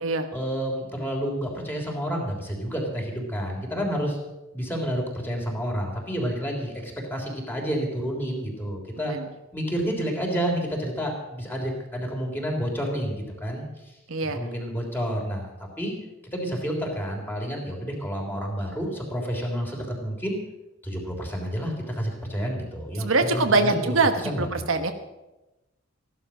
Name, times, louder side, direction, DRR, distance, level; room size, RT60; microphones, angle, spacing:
voice 1, 0.3-4.2 4.5-9.1 9.5-13.6 14.2-15.5 15.8-15.9 16.3-20.4 20.8-23.8 24.2-24.7, equal, 10° left, 0 dB, 3.4 m, -29 dB
voice 2, 9.0-9.3 14.1-14.4 23.0-24.9, right 3 dB, 80° right, 7 dB, 1.3 m, -23 dB
15.0 x 12.0 x 6.2 m, 0.99 s
head